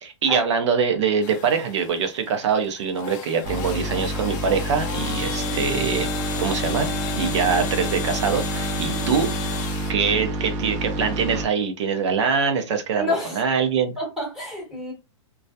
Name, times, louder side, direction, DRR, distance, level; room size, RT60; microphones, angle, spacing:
voice 1, 0.0-6.1 6.4-9.3 9.9-13.9, right 6 dB, 65° right, 0.7 m, -23 dB
sound 1, 1.2-9.9, left 8 dB, 35° left, 0.4 m, -33 dB
sound 2, 3.4-11.4, right 1 dB, 30° right, 0.4 m, -28 dB
voice 2, 13.0-13.4 14.0-14.9, left 2 dB, ahead, 1.0 m, -29 dB
2.3 x 2.1 x 2.6 m
hypercardioid pair, 155°, 16 cm